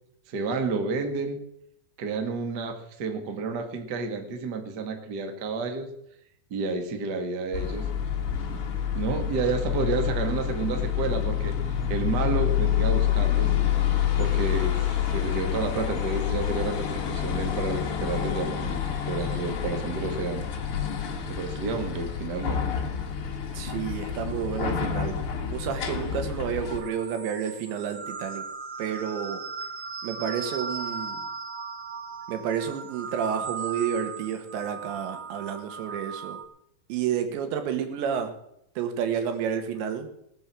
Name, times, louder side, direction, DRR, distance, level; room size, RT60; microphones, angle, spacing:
voice 1, 0.3-1.5 2.0-5.9 6.5-7.9 8.9-13.5 14.2-20.5 21.3-22.6 37.3-37.4, right 4 dB, 70° right, 5 dB, 0.9 m, -30 dB
sound 1, 7.5-26.8, left 9 dB, 60° left, 1.4 m, -28 dB
voice 2, 23.5-25.2 25.5-28.5 28.8-29.4 30.0-31.2 32.3-36.4 36.9-38.3 38.8-40.1, right 8 dB, 90° right, 7 dB, 3.8 m, -30 dB
sound 2, 26.6-36.4, right 5 dB, 45° right, 1.7 m, -37 dB
19.0 x 7.7 x 7.5 m, 0.77 s
omnidirectional pair, 4.9 m